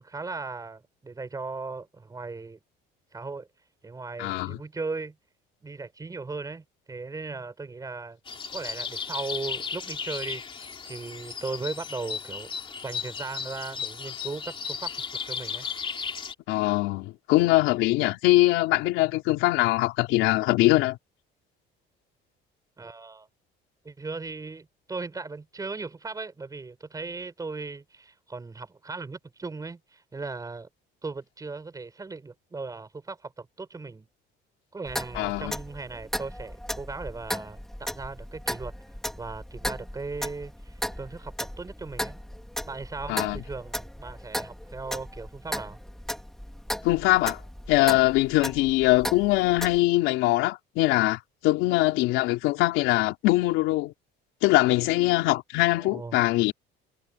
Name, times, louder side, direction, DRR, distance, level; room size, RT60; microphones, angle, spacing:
voice 1, 0.0-2.6 3.1-3.5 3.8-5.2 5.6-8.2 8.5-12.5 12.8-14.9 15.2-15.7 22.8-23.3 23.8-30.7 31.0-34.1 34.7-38.7 39.2-42.2 42.6-45.8 55.8-56.2, right 3 dB, 20° right, 7.3 m, -37 dB
voice 2, 4.2-4.6 16.5-21.0 35.2-35.6 43.1-43.4 46.8-47.4 47.7-53.9 54.4-56.5, left 18 dB, 85° left, 3.6 m, -22 dB
sound 1, 8.3-16.3, left 6 dB, 25° left, 2.9 m, -35 dB
Clock, 34.9-49.8, equal, ahead, 3.3 m, -36 dB
cardioid pair, 135°, 20 cm